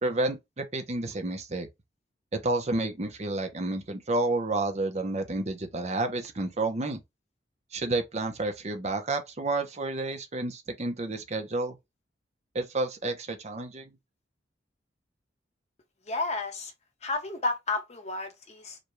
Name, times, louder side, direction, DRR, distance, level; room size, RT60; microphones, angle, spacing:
voice 1, 0.0-1.7 2.3-7.0 7.7-11.8 12.5-13.9, right 2 dB, 40° right, 0.8 m, -30 dB
voice 2, 16.0-16.7 17.0-18.8, left 3 dB, 40° left, 1.0 m, -31 dB
5.0 x 2.3 x 3.1 m
head